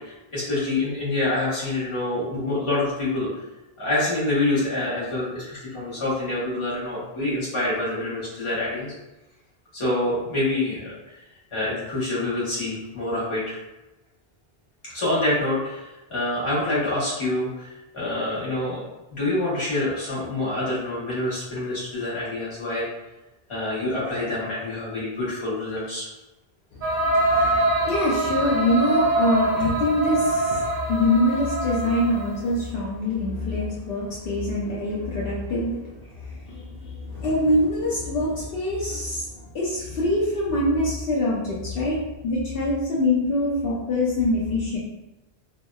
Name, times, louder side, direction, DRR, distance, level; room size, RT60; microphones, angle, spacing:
voice 1, 0.0-3.3 3.8-8.9 9.7-11.2 11.5-13.6 14.8-18.8 19.1-22.9 23.5-26.1 27.8-27.9, left 2 dB, 30° left, -8 dB, 0.9 m, -26 dB
voice 2, 26.7-35.8 36.3-39.3 39.5-42.0 42.2-44.8, left 1 dB, 70° left, -6 dB, 0.7 m, -24 dB
sound 1, 26.8-32.4, right 2 dB, 60° right, 0.6 m, -24 dB
2.8 x 2.0 x 2.2 m, 1.0 s
omnidirectional pair, 1.0 m